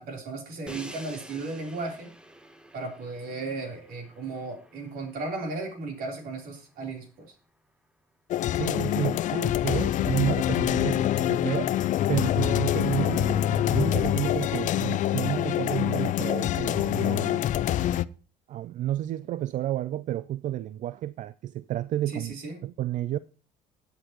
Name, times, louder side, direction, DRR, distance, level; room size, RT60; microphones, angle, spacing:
voice 1, 0.0-2.1 2.7-7.3 22.1-22.6, right 3 dB, 70° right, 3.6 m, -35 dB
Crash cymbal, 0.7-6.6, equal, 5° right, 1.2 m, -48 dB
sound 1, 8.3-18.1, left 12 dB, 55° left, 0.4 m, -25 dB
voice 2, 8.5-11.8 12.1-17.5 18.5-22.4 22.6-23.2, right 13 dB, 55° right, 0.4 m, -31 dB
16.5 x 8.2 x 3.0 m
cardioid pair, 95°, 15 cm